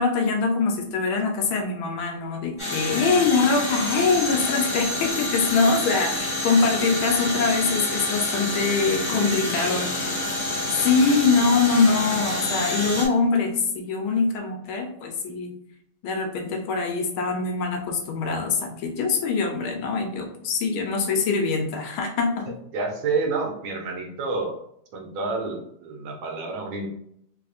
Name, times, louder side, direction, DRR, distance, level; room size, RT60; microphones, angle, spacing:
voice 1, 0.0-9.8 10.8-15.5 16.0-22.5, left 4 dB, 75° left, 3 dB, 1.4 m, -23 dB
sound 1, 2.6-13.1, left 1 dB, 25° left, 0.7 m, -28 dB
voice 2, 8.8-9.9 22.7-24.5 24.9-26.9, right 4 dB, 70° right, 1 dB, 1.4 m, -29 dB
3.4 x 3.4 x 2.4 m, 0.73 s
omnidirectional pair, 2.4 m